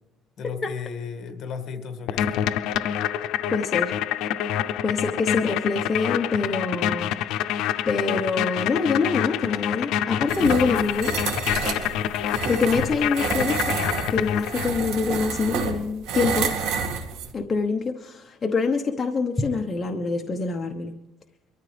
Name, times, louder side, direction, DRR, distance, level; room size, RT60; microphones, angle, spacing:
voice 1, 0.4-2.4, left 6 dB, 50° left, 7 dB, 1.8 m, -35 dB
sound 1, 2.1-14.9, left 10 dB, 75° left, 0.6 m, -27 dB
voice 2, 3.5-4.0 4.8-7.1 7.9-11.1 12.5-13.8 14.1-16.5 17.3-20.9, left 4 dB, 25° left, 3 dB, 1.0 m, -25 dB
sound 2, 10.3-17.3, right 5 dB, 80° right, 2.1 m, -29 dB
23.5 x 13.5 x 3.4 m, 0.96 s
cardioid pair, 125°, 0 cm